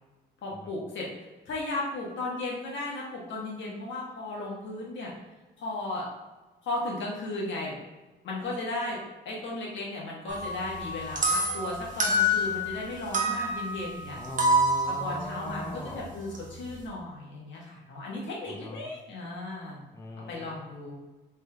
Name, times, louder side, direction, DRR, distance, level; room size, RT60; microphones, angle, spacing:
voice 1, 0.4-1.1 1.5-5.1 5.6-6.1 6.6-7.8 8.2-9.0 9.2-14.2 14.9-19.8 20.3-20.9, left 2 dB, 70° left, -3 dB, 1.3 m, -35 dB
sound 1, 10.3-12.8 13.1-16.8, equal, 40° right, 0.8 m, -28 dB
voice 2, 14.1-16.1 18.5-18.9 19.9-20.5, left 1 dB, 15° left, 0 dB, 0.6 m, -40 dB
3.5 x 3.3 x 3.3 m, 1.2 s
cardioid pair, 90°, 20 cm